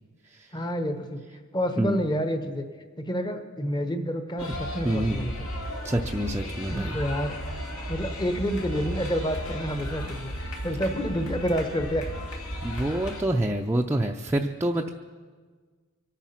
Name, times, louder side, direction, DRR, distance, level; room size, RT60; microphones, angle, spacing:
voice 1, 0.5-1.2 1.5-2.6 3.0-5.5 6.7-7.3 7.9-12.0, equal, 20° left, 8 dB, 1.0 m, -29 dB
sound 1, 4.4-13.2, equal, 75° left, 2.7 m, -34 dB
voice 2, 4.8-5.2 5.8-7.0 12.6-14.9, right 1 dB, 10° right, 1 dB, 0.5 m, -27 dB
24.5 x 9.2 x 5.7 m, 1.5 s
head